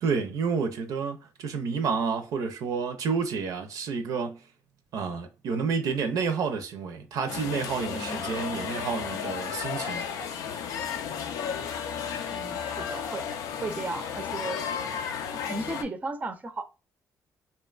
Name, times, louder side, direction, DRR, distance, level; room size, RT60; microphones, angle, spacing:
voice 1, 0.0-4.4 4.9-10.0, right 5 dB, 70° right, 0.5 m, -30 dB
sound 1, 7.3-15.8, left 7 dB, 80° left, 0.4 m, -33 dB
voice 2, 12.3-13.2 13.6-14.6 15.3-16.6, right 3 dB, 25° right, 0.5 m, -35 dB
2.8 x 2.2 x 2.3 m
cardioid pair, 80°, 6 cm